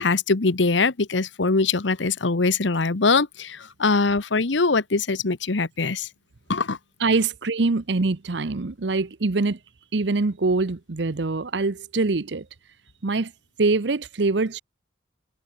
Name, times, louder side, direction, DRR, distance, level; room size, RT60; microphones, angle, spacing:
voice 1, 0.0-6.1 6.5-6.8, left 3 dB, 80° left, 1.1 m, -22 dB
voice 2, 7.0-9.6 9.9-12.5 13.0-13.3 13.6-14.6, right 3 dB, 70° right, 0.8 m, -24 dB
head